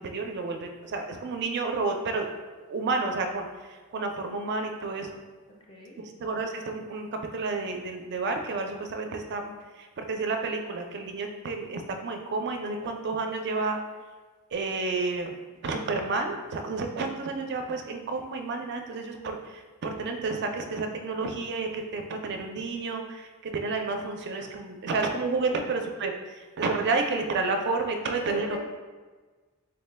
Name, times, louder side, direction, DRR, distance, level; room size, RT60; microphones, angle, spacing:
voice 1, 0.0-2.3 2.7-3.5 3.9-5.1 6.2-9.5 9.8-13.8 14.5-15.4 15.6-28.6, right 3 dB, 50° right, 4 dB, 0.4 m, -30 dB
voice 2, 5.7-6.0 25.5-25.7 28.0-28.6, left 3 dB, 25° left, -2 dB, 0.4 m, -40 dB
3.8 x 2.1 x 3.2 m, 1.4 s
head